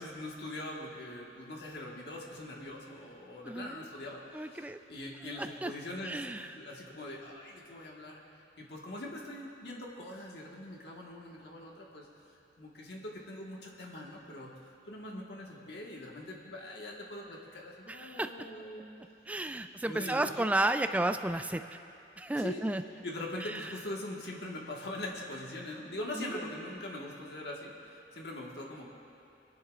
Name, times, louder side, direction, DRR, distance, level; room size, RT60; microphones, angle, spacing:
voice 1, 0.0-8.2 8.6-12.1 12.6-14.5 14.9-18.9 19.3-19.4 19.9-20.5 22.3-22.6 23.0-28.9, left 1 dB, 70° left, -2 dB, 1.6 m, -42 dB
voice 2, 3.4-3.8 4.3-4.8 5.4-5.7 6.0-6.5 17.9-18.5 19.3-21.8 22.2-22.8 23.4-23.7 26.1-26.4, right 1 dB, 10° right, 9 dB, 0.3 m, -33 dB
25.0 x 10.5 x 2.5 m, 2.6 s
head